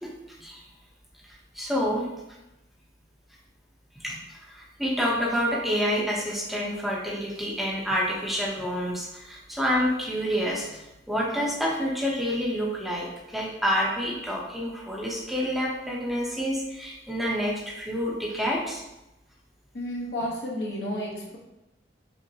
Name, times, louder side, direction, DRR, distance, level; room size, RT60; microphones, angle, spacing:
voice 1, 1.5-2.1 4.0-10.8 11.1-18.8, equal, ahead, -5 dB, 0.7 m, -28 dB
voice 2, 19.7-21.4, equal, 65° left, -3 dB, 0.9 m, -31 dB
5.4 x 2.1 x 2.7 m, 0.93 s
head